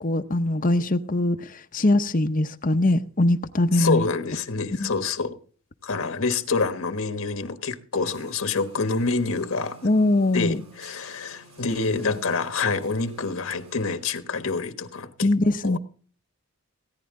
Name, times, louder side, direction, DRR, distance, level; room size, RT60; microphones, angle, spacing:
voice 1, 0.0-4.0 4.8-4.9 9.8-10.6 15.2-15.8, left 1 dB, 40° left, 0.8 m, -22 dB
voice 2, 3.7-5.4 5.8-9.8 10.3-15.3 15.6-15.8, left 4 dB, 70° left, 1.3 m, -27 dB
sound 1, 8.1-14.0, right 2 dB, 85° right, 6.0 m, -51 dB
16.5 x 10.5 x 3.7 m
head